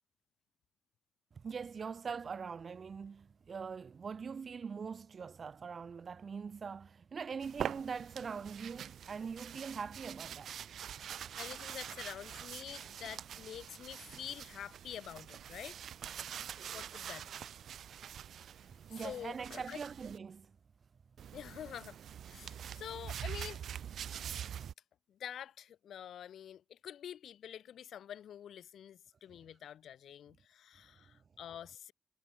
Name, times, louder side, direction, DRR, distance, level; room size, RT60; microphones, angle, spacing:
voice 1, 1.3-10.6 18.9-20.6, right 6 dB, 45° right, 2.0 m, -42 dB
sound 1, 7.4-20.2 21.2-24.7, right 9 dB, 80° right, 0.8 m, -45 dB
voice 2, 11.4-15.8 16.7-17.4 19.0-19.8 21.3-22.0 22.3-23.6 25.1-31.9, left 10 dB, 85° left, 2.9 m, -47 dB
wide cardioid pair, 120°, 0 cm